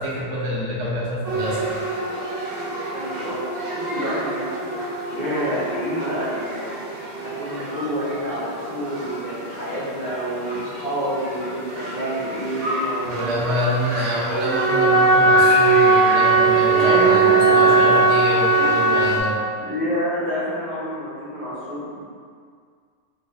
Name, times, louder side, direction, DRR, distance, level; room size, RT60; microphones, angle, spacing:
voice 1, 0.0-1.7 13.1-19.3, equal, 70° right, -6 dB, 1.3 m, -26 dB
sound 1, 1.3-19.2, right 3 dB, 45° right, 1.3 m, -21 dB
voice 2, 2.9-4.7 5.1-6.8 7.1-13.8 16.7-18.1 18.6-19.0 19.6-22.0, equal, 35° left, -10 dB, 1.3 m, -28 dB
4.7 x 3.8 x 2.6 m, 2.1 s
omnidirectional pair, 1.3 m